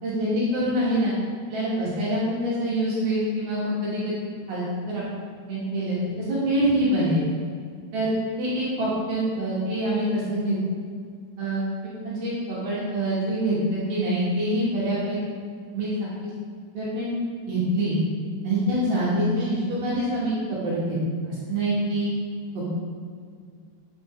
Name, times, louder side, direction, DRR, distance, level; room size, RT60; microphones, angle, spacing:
voice 1, 0.0-1.2 1.5-4.2 4.5-5.0 5.5-7.2 7.9-10.6 11.4-15.2 15.7-16.3 16.7-17.1 17.5-18.0 18.4-21.0 21.2-22.1 22.5-22.7, right 1 dB, 60° right, -9 dB, 4.1 m, -25 dB
11.0 x 8.1 x 3.8 m, 2.1 s
omnidirectional pair, 4.9 m